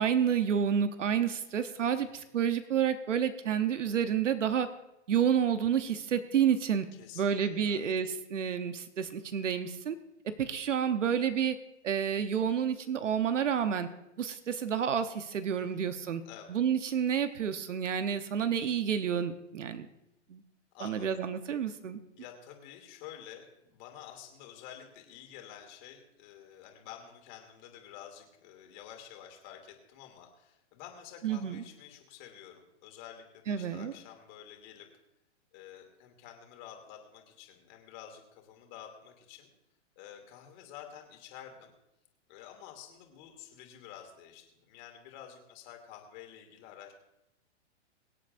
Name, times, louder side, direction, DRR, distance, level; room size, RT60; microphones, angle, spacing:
voice 1, 0.0-4.7 5.1-6.9 7.2-10.0 10.2-11.6 11.8-13.9 14.2-16.2 16.5-19.9 20.3-20.4 20.8-22.0 31.2-31.6 33.5-33.9, right 8 dB, 85° right, 10 dB, 1.0 m, -29 dB
voice 2, 1.9-2.3 6.9-7.8 15.6-15.9 16.2-16.6 20.7-21.2 22.2-34.9 35.5-39.5 40.0-41.7 42.3-46.9, left 10 dB, 40° left, 3 dB, 2.9 m, -50 dB
24.0 x 8.4 x 2.6 m, 0.89 s
hypercardioid pair, 140°, 36 cm